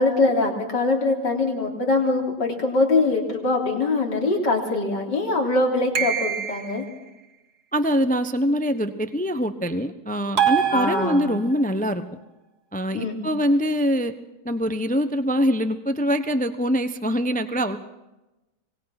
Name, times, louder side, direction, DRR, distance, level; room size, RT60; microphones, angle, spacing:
voice 1, 0.0-6.8 10.7-11.4 12.9-13.2, left 2 dB, 90° left, 2 dB, 4.2 m, -23 dB
sound 1, 5.9-6.9 10.4-11.6, right 8 dB, 65° right, 2.4 m, -24 dB
voice 2, 7.7-12.0 12.7-14.1 14.4-17.8, equal, 5° left, 9 dB, 0.8 m, -23 dB
25.5 x 20.0 x 6.0 m, 1.0 s
omnidirectional pair, 1.8 m